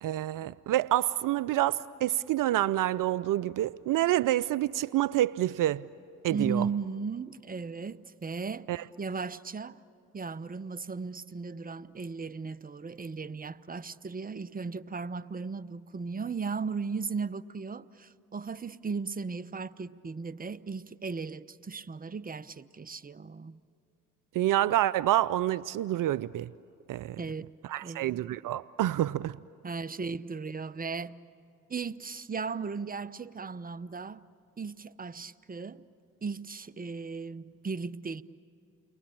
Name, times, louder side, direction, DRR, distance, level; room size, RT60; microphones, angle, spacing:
voice 1, 0.0-5.8 6.2-6.7 8.7-8.8 24.3-26.5 26.9-27.2 27.7-29.4, right 14 dB, 65° right, 0.6 m, -27 dB
voice 2, 6.3-9.8 10.1-23.6 27.2-27.5 27.8-28.2 29.6-31.2 31.7-34.2 34.6-35.8 36.2-38.2, right 5 dB, 25° right, 0.9 m, -36 dB
29.5 x 23.0 x 8.8 m
hypercardioid pair, 45°, 35 cm